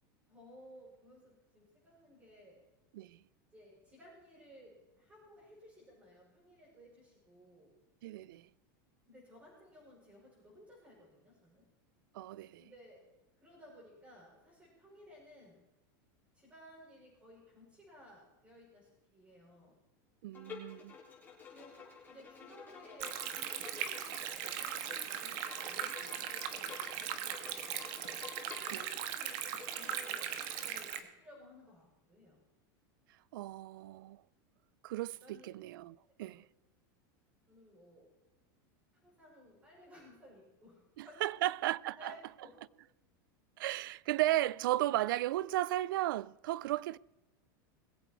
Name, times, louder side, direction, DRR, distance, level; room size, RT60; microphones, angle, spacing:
voice 1, 0.3-2.6 3.5-7.7 9.1-11.6 12.5-13.0 13.4-15.6 16.3-19.8 21.5-28.2 28.7-32.4 35.2-35.5 35.9-36.3 37.5-38.1 38.9-41.3 41.7-42.5, equal, 15° right, 6.3 m, -58 dB
voice 2, 8.0-8.5 12.1-12.7 20.2-20.9 28.7-28.8 33.3-34.2 34.8-36.5 41.0-42.1 43.6-47.0, right 15 dB, 80° right, 0.4 m, -35 dB
Bowed string instrument, 20.3-30.9, left 5 dB, 15° left, 4.3 m, -51 dB
Stream, 23.0-31.0, right 10 dB, 55° right, 1.4 m, -39 dB
21.5 x 8.3 x 4.6 m
supercardioid pair, 145°, 11 cm